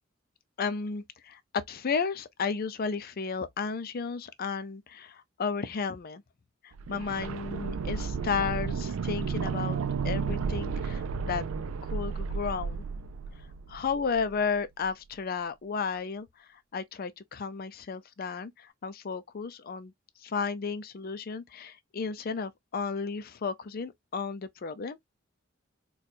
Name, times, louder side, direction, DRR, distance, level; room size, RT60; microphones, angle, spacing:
voice 1, 0.6-6.2 6.6-11.4 11.8-12.8 13.7-19.9 20.2-25.0, left 5 dB, 45° left, 0.4 m, -33 dB
sound 1, 6.7-14.5 14.8-14.9, right 5 dB, 85° right, 0.4 m, -33 dB
4.2 x 2.3 x 2.6 m
head